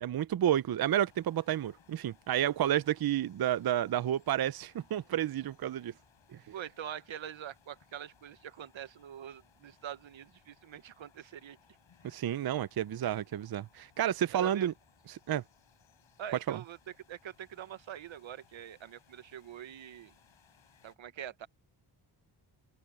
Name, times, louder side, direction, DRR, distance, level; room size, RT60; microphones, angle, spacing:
voice 1, 0.0-5.9 12.0-14.7 15.1-15.4 16.5-16.6, right 11 dB, 55° right, 0.6 m, -30 dB
sound 1, 1.0-21.0, left 8 dB, 85° left, 6.3 m, -66 dB
voice 2, 6.5-11.6 14.3-14.7 16.2-16.8 17.1-20.1 20.8-21.5, right 10 dB, 85° right, 1.1 m, -44 dB
open air
wide cardioid pair, 105°, 45 cm